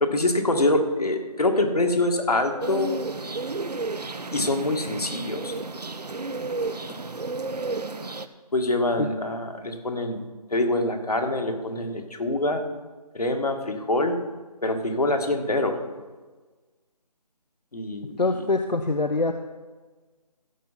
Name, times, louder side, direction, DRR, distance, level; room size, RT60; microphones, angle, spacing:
voice 1, 0.0-2.9 4.3-5.5 8.5-10.2 10.5-12.6 13.1-14.2 14.6-15.8 17.7-18.2, left 2 dB, 65° left, 4 dB, 1.9 m, -25 dB
sound 1, 2.6-8.3, right 3 dB, 75° right, 0.8 m, -32 dB
voice 2, 18.2-19.3, left 3 dB, 85° left, 6 dB, 0.8 m, -24 dB
15.0 x 6.9 x 4.1 m, 1.3 s
figure-of-eight pair, 160°, 21 cm